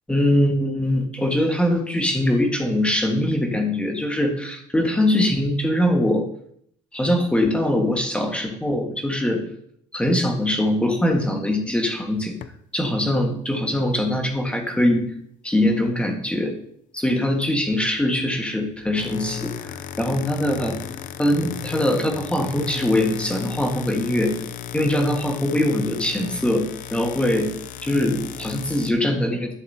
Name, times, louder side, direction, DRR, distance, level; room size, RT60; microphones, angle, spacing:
voice 1, 0.1-6.3 6.9-9.4 9.9-12.3 12.7-15.0 15.4-16.5 16.9-20.8 21.2-24.3 24.7-27.5 27.8-29.5, left 1 dB, 5° left, 3 dB, 1.6 m, -22 dB
sound 1, 12.4-12.6 18.7-28.9, left 9 dB, 55° left, 0.6 m, -35 dB
11.5 x 6.4 x 2.8 m, 0.67 s
supercardioid pair, 100°, 16 cm